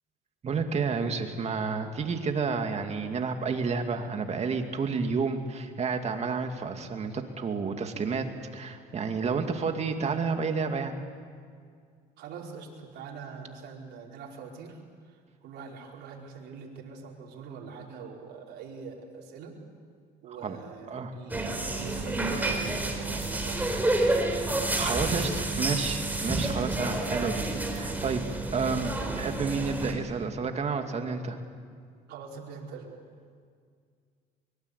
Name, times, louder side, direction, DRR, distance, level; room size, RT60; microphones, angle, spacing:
voice 1, 0.4-10.9 20.3-20.6 20.9-21.1 24.7-28.2 28.5-31.4, right 5 dB, 40° right, 5 dB, 2.5 m, -30 dB
voice 2, 12.2-19.6 20.2-24.0 32.1-33.0, right 5 dB, 75° right, -1 dB, 5.0 m, -43 dB
sound 1, 21.3-29.9, right 2 dB, 10° right, 4.1 m, -29 dB
24.0 x 23.0 x 8.3 m, 2.1 s
cardioid pair, 110°, 17 cm